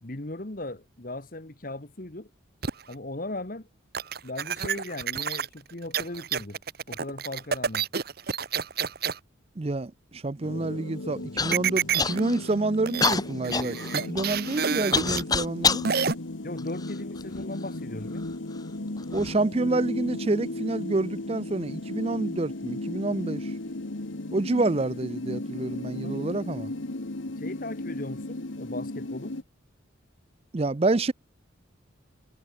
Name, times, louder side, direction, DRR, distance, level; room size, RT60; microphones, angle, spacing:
voice 1, 0.0-2.3 2.9-3.7 4.2-6.6 6.9-7.9 16.4-18.2 26.0-26.4 27.4-29.3, left 2 dB, 45° left, 1.6 m, -38 dB
sound 1, 2.6-2.9 3.9-9.2 11.5-12.2 12.5-12.6 12.9-13.2 13.4-15.2 15.8-16.1, right 7 dB, 50° right, 1.0 m, -28 dB
voice 2, 9.6-15.8 19.1-23.5 24.3-26.7 30.5-31.1, right 2 dB, 30° right, 0.5 m, -28 dB
sound 2, 10.4-29.4, left 2 dB, 75° left, 1.6 m, -36 dB
Human voice / Cough, 11.4-11.6 12.0-12.5 13.0-15.9 16.6-17.4 18.2-18.3 19.0-19.3, left 4 dB, 20° left, 1.2 m, -27 dB
head